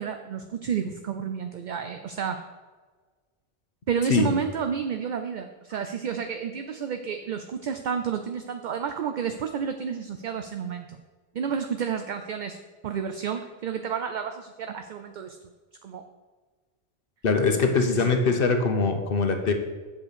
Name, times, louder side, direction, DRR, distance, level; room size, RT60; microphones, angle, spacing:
voice 1, 0.0-2.4 3.9-11.0 11.3-12.6 12.8-15.4 15.8-16.0 17.9-18.1, right 7 dB, 55° right, 7 dB, 0.6 m, -31 dB
voice 2, 17.2-19.5, left 4 dB, 55° left, 5 dB, 1.1 m, -22 dB
8.0 x 5.1 x 6.8 m, 1.4 s
omnidirectional pair, 1.1 m